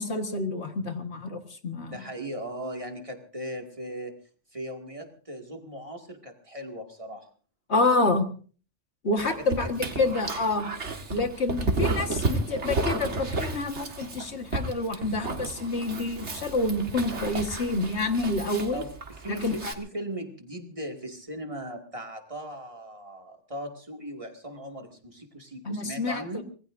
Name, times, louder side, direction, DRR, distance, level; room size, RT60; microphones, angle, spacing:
voice 1, 0.0-2.0 7.7-8.3 9.0-10.7 11.1-18.8 19.3-19.7 25.7-26.4, left 2 dB, 70° left, 6 dB, 1.9 m, -28 dB
voice 2, 1.7-4.1 4.5-7.3 9.1-10.0 18.7-26.4, right 1 dB, 30° right, 3 dB, 2.3 m, -38 dB
Dog, 9.2-19.7, right 2 dB, 75° right, 2.1 m, -32 dB
25.5 x 20.5 x 2.6 m, 0.41 s
omnidirectional pair, 1.2 m